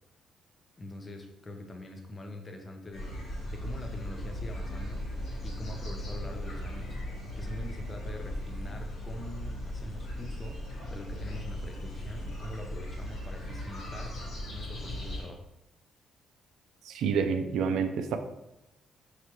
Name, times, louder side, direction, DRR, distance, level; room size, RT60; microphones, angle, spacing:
voice 1, 0.8-3.1 3.5-5.1 5.4-7.0 7.4-14.2 14.5-15.5, left 1 dB, 30° left, 4 dB, 0.7 m, -44 dB
sound 1, 2.9-15.2, equal, 65° left, 1.6 m, -37 dB
voice 2, 16.8-18.2, right 6 dB, 80° right, 7 dB, 0.4 m, -28 dB
4.6 x 3.2 x 3.1 m, 0.88 s
cardioid pair, 90°, 0 cm